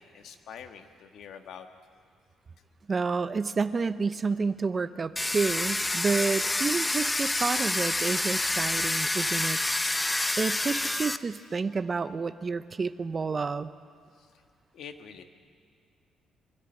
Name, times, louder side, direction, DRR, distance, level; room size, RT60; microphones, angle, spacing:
voice 1, 0.0-1.7 14.2-14.3 14.7-15.2, left 7 dB, 70° left, 7 dB, 1.4 m, -45 dB
voice 2, 2.9-9.6 10.4-13.7, right 4 dB, 30° right, 13 dB, 0.7 m, -29 dB
Domestic sounds home sounds, 5.2-11.2, left 2 dB, 15° left, 0.6 m, -28 dB
24.0 x 14.0 x 8.8 m, 2.1 s
cardioid pair, 110°, 0 cm